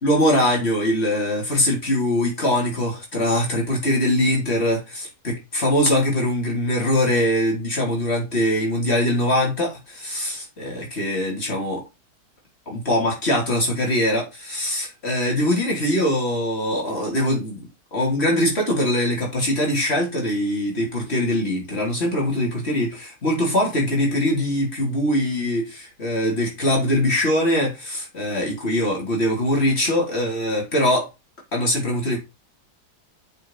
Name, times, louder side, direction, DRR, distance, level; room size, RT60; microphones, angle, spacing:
voice 1, 0.0-11.8 12.7-17.6 17.9-31.1 31.5-32.2, left 1 dB, 40° left, 4.1 m, -22 dB
7.3 x 6.4 x 5.8 m
omnidirectional pair, 1.7 m